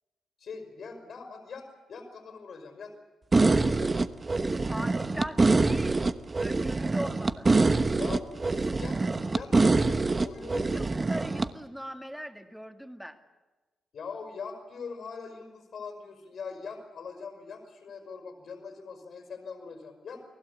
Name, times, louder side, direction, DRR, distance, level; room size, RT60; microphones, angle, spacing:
voice 1, 0.4-2.9 3.4-3.9 4.4-4.8 5.2-5.3 7.9-9.0 9.3-10.8 13.9-20.2, left 5 dB, 55° left, 3 dB, 5.0 m, -42 dB
sound 1, 3.3-11.5, right 3 dB, 25° right, 1.1 m, -25 dB
voice 2, 4.7-6.0 6.4-7.5 10.5-13.2, equal, ahead, 6 dB, 2.3 m, -40 dB
29.5 x 20.0 x 8.4 m, 1.2 s
wide cardioid pair, 145°, 0 cm